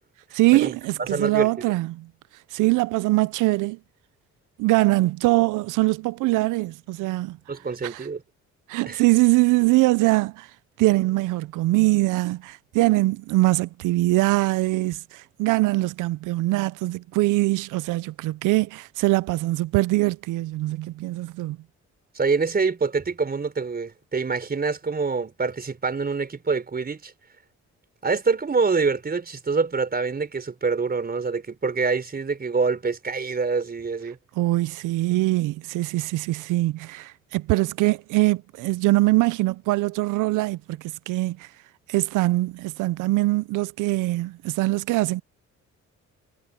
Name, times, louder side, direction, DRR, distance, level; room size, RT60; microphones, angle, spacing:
voice 1, 0.3-2.1 2.5-3.8 4.6-7.4 7.8-8.1 8.7-10.5 10.8-21.6 34.4-41.5 41.9-45.2, right 20 dB, 90° right, 0.5 m, -22 dB
voice 2, 1.1-1.5 7.5-8.2 8.9-9.0 22.1-27.1 28.0-34.2, right 4 dB, 30° right, 4.6 m, -25 dB
cardioid pair, 90°, 30 cm